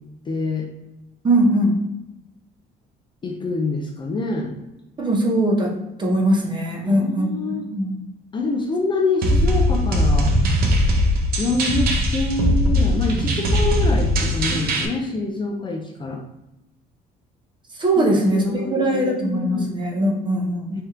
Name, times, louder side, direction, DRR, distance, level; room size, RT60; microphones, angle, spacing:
voice 1, 0.3-0.7 3.2-4.6 6.8-7.6 8.3-10.3 11.4-16.2 18.0-19.7, left 3 dB, 30° left, 1 dB, 0.5 m, -26 dB
voice 2, 1.2-1.8 5.0-5.7 6.0-8.0 17.8-20.8, right 1 dB, 25° right, 0 dB, 0.8 m, -21 dB
sound 1, 9.2-14.9, equal, 65° right, 0.7 m, -20 dB
3.3 x 2.9 x 3.6 m, 0.94 s
cardioid pair, 110°, 17 cm